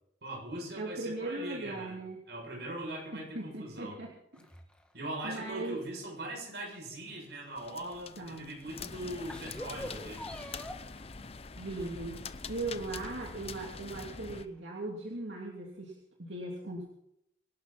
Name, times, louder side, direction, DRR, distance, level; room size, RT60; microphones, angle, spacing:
voice 1, 0.2-2.0 2.3-4.0 4.9-10.2 13.0-13.1, right 1 dB, 65° right, 1 dB, 7.1 m, -41 dB
voice 2, 0.8-2.2 3.1-4.5 5.2-5.8 8.2-8.6 11.6-16.9, right 2 dB, 85° right, -1 dB, 2.9 m, -39 dB
sound 1, 4.3-6.2 6.6-7.9 8.6-8.7 9.1-11.0 11.6-12.3 12.8-13.5 13.9-14.0 15.1-15.2, equal, 5° left, 1.6 m, -47 dB
sound 2, 7.6-14.5, left 4 dB, 35° left, 0.7 m, -44 dB
25.5 x 12.0 x 4.3 m, 0.77 s
head